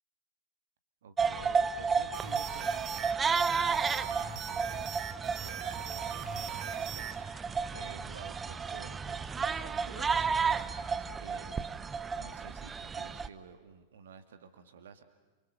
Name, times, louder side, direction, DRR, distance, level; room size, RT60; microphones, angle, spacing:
voice 1, 1.0-15.0, right 6 dB, 60° right, 8 dB, 2.1 m, -52 dB
sound 1, 1.2-13.3, right 5 dB, 15° right, 0.8 m, -32 dB
sound 2, 2.1-7.2, right 8 dB, 35° right, 1.8 m, -40 dB
29.5 x 25.0 x 6.8 m, 1.2 s
figure-of-eight pair, 90°, 0 cm